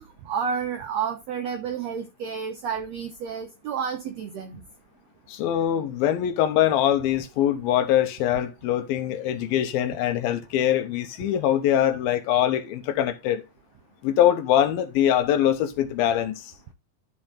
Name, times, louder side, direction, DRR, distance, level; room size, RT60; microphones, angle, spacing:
voice 1, 0.3-4.6, right 7 dB, 80° right, 1.5 m, -30 dB
voice 2, 5.3-13.4 14.0-16.5, left 11 dB, 80° left, 2.8 m, -23 dB
12.5 x 4.4 x 3.8 m
omnidirectional pair, 4.2 m